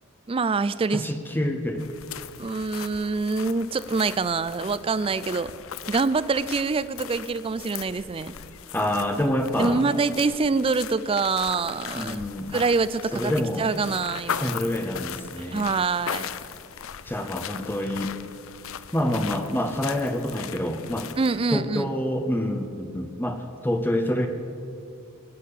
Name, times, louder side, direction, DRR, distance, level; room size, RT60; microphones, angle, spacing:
voice 1, 0.3-1.0 2.4-5.5 5.9-8.3 9.6-12.2 12.5-13.3 13.6-14.5 15.5-16.3 21.2-21.9, right 4 dB, 25° right, 15 dB, 0.4 m, -25 dB
voice 2, 0.9-1.9 8.7-9.8 11.9-12.6 13.1-13.7 14.3-15.7 17.0-18.1 18.9-21.1 21.5-24.3, left 1 dB, 10° left, 5 dB, 0.7 m, -27 dB
Gravel road walk, 1.8-21.4, left 8 dB, 70° left, 0.5 m, -38 dB
18.5 x 6.6 x 8.4 m, 2.6 s
head